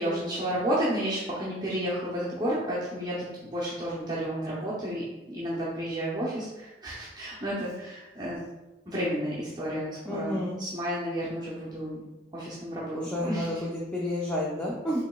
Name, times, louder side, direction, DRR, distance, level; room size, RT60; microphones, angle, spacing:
voice 1, 0.0-5.0 5.3-8.4 8.9-12.0 12.3-13.6, equal, 25° right, -8 dB, 0.7 m, -31 dB
voice 2, 10.1-10.6 12.9-15.0, left 1 dB, 5° left, -4 dB, 0.4 m, -30 dB
4.8 x 3.1 x 2.3 m, 1.1 s
head